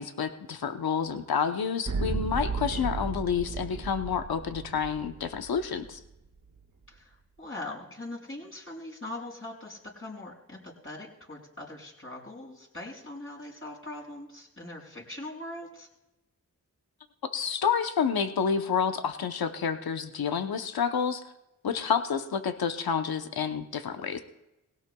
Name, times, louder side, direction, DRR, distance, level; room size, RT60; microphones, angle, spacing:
voice 1, 0.0-6.0 17.3-21.2 21.6-24.2, left 6 dB, 75° left, 8 dB, 0.9 m, -29 dB
sound 1, 1.9-5.9, right 3 dB, 50° right, 1.8 m, -34 dB
voice 2, 6.9-15.9, left 2 dB, 35° left, -3 dB, 6.1 m, -41 dB
20.0 x 17.0 x 2.3 m, 0.92 s
cardioid pair, 45°, 37 cm